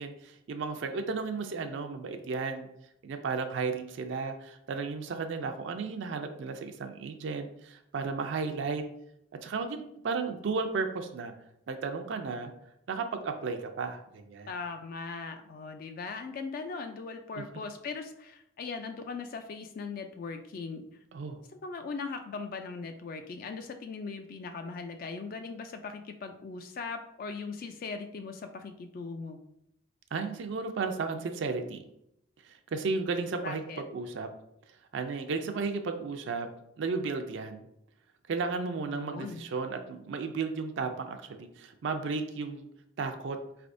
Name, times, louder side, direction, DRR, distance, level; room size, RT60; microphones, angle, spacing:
voice 1, 0.0-2.7 3.0-8.8 9.4-11.3 11.7-12.5 12.9-14.5 17.4-17.5 21.1-21.4 30.1-31.8 32.4-33.6 33.9-34.3 34.9-36.5 36.8-37.6 38.3-42.7 43.0-43.4, right 4 dB, 70° right, 7 dB, 0.4 m, -34 dB
voice 2, 14.5-20.8 21.5-29.4 33.4-33.8 38.9-39.4, left 4 dB, 50° left, 6 dB, 0.3 m, -39 dB
4.1 x 3.3 x 2.5 m, 0.78 s
head